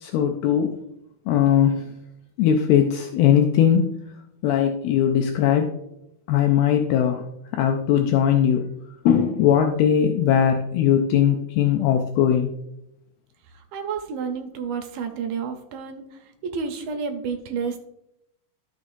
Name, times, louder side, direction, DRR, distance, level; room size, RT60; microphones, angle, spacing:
voice 1, 0.0-0.8 1.3-1.8 2.4-4.0 4.4-5.7 6.3-7.2 7.5-8.7 9.1-12.6, left 9 dB, 80° left, 4 dB, 2.5 m, -19 dB
voice 2, 13.5-17.8, right 6 dB, 75° right, 5 dB, 2.3 m, -30 dB
13.5 x 6.4 x 2.6 m, 0.81 s
omnidirectional pair, 4.6 m